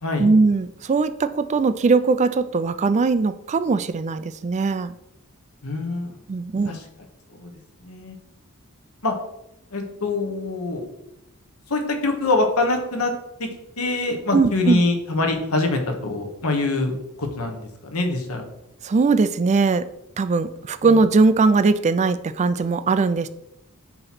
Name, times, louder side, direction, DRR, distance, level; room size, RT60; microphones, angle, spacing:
voice 1, 0.2-4.9 6.3-6.8 14.3-14.8 18.8-19.9 20.2-23.3, right 4 dB, 30° right, 12 dB, 0.3 m, -20 dB
voice 2, 5.6-6.2 6.7-6.8 7.3-7.5 7.8-8.1 9.0-9.1 9.7-10.9 11.7-13.1 13.4-13.5 13.8-16.9 17.2-18.4, left 2 dB, 70° left, 4 dB, 1.2 m, -24 dB
7.7 x 3.0 x 5.8 m, 0.84 s
head